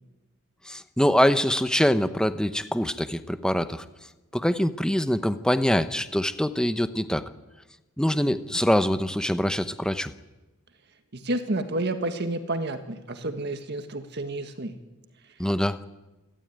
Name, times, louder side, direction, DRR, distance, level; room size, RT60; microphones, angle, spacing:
voice 1, 0.7-3.8 4.3-7.3 8.0-10.1 15.4-15.8, equal, 5° left, 11 dB, 0.8 m, -24 dB
voice 2, 11.1-14.8, right 2 dB, 55° right, 7 dB, 1.6 m, -30 dB
27.0 x 13.0 x 9.3 m, 1.1 s
head